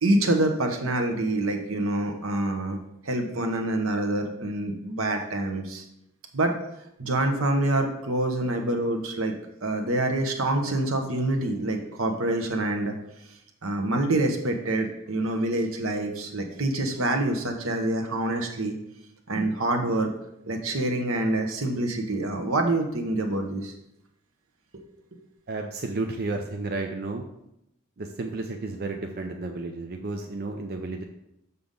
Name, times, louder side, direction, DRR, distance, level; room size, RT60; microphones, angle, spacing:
voice 1, 0.0-2.8 3.0-5.8 6.3-6.5 7.0-9.3 9.6-12.9 13.6-18.7 19.3-20.1 20.5-23.7 24.7-24.8, right 2 dB, 75° right, 4 dB, 1.1 m, -26 dB
voice 2, 25.5-27.3 28.0-31.0, right 3 dB, 50° right, 3 dB, 0.6 m, -32 dB
6.9 x 6.8 x 3.8 m, 0.81 s
head